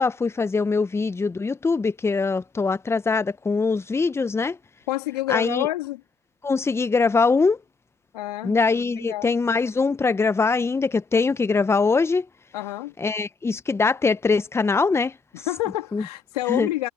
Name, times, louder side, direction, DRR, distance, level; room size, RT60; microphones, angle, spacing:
voice 1, 0.0-4.6 5.3-5.7 6.4-7.6 8.4-12.2 13.0-15.1 15.9-16.0 16.5-16.7, left 4 dB, 10° left, 1.2 m, -22 dB
voice 2, 4.9-6.0 8.1-8.5 9.0-9.3 12.5-12.9 15.3-16.9, left 17 dB, 70° left, 2.3 m, -28 dB
hypercardioid pair, 95°, 21 cm